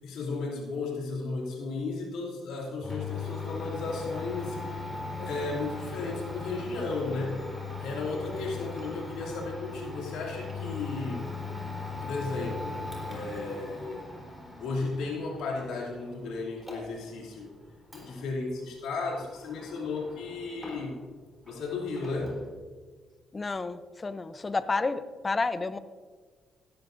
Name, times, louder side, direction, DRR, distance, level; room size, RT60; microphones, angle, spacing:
voice 1, 0.0-7.5 7.8-11.3 12.0-14.1 14.6-17.5 17.9-21.0 21.4-22.4, left 3 dB, 85° left, -1 dB, 2.7 m, -34 dB
Domestic sounds home sounds, 2.8-21.2 21.4-22.5, left 3 dB, ahead, 3.9 m, -40 dB
voice 2, 23.3-25.8, left 3 dB, 25° left, 13 dB, 0.7 m, -30 dB
16.5 x 12.0 x 2.6 m, 1.5 s
cardioid pair, 90°, 0 cm